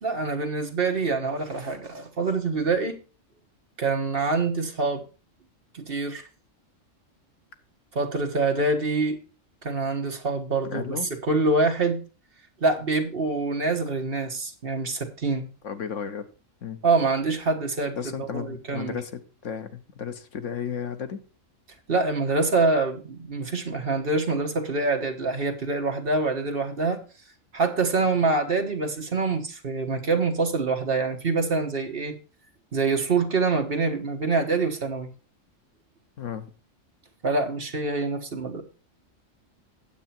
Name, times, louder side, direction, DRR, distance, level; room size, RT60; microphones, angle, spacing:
voice 1, 0.0-2.9 3.8-5.0 5.7-6.2 7.9-9.2 9.6-11.0 11.2-12.0 12.6-15.5 16.8-19.0 21.9-27.0 27.5-32.1 32.7-35.1 37.2-38.6, right 3 dB, 45° right, 1.4 m, -25 dB
voice 2, 10.6-11.1 15.6-16.3 16.6-16.8 18.0-21.2 36.2-36.5, left 7 dB, 70° left, 1.3 m, -34 dB
9.1 x 8.2 x 4.3 m
omnidirectional pair, 1.3 m